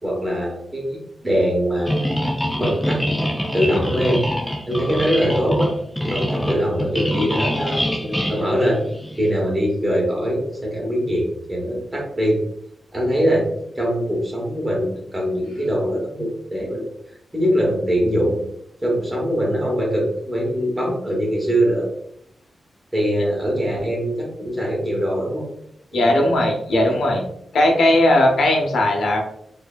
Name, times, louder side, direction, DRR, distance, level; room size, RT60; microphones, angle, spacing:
voice 1, 0.0-1.0 1.2-1.9 2.6-3.0 3.5-4.2 4.7-5.7 6.1-8.8 9.2-12.4 12.9-13.5 13.7-16.9 17.3-18.4 18.8-21.9 22.9-25.4 25.9-26.4 26.7-26.9, equal, 15° right, -2 dB, 1.2 m, -22 dB
sound 1, 1.9-9.3, equal, 5° left, 0.4 m, -25 dB
voice 2, 25.9-27.2 27.5-29.2, left 1 dB, 85° left, 1 dB, 0.9 m, -17 dB
4.7 x 2.7 x 2.4 m, 0.72 s
wide cardioid pair, 175°, 0 cm